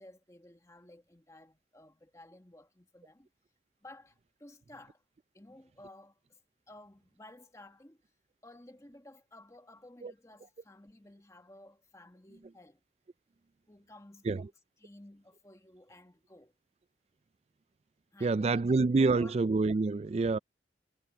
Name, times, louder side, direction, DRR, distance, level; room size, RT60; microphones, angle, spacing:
voice 1, 0.0-3.3 3.8-5.0 5.3-6.4 6.7-8.0 8.4-12.8 13.7-14.5 14.8-16.5 18.1-19.4, left 1 dB, 15° left, 1.3 m, -55 dB
voice 2, 18.2-20.4, right 3 dB, 35° right, 0.3 m, -27 dB
head